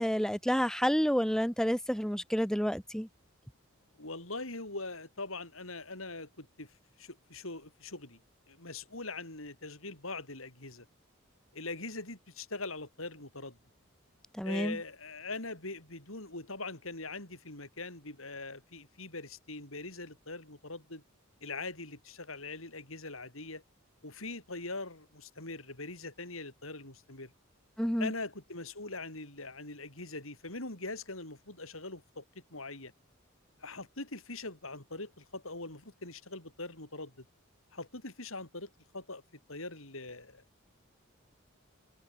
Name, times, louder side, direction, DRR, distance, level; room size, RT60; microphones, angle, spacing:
voice 1, 0.0-3.1 14.3-14.8 27.8-28.1, equal, 5° left, 2.9 m, -29 dB
voice 2, 3.9-8.2 8.5-10.9 11.5-13.6 14.4-21.0 21.4-23.6 24.0-27.3 28.0-32.2 32.5-32.9 33.6-37.2 37.7-39.2 39.5-40.4, left 3 dB, 75° left, 7.5 m, -42 dB
head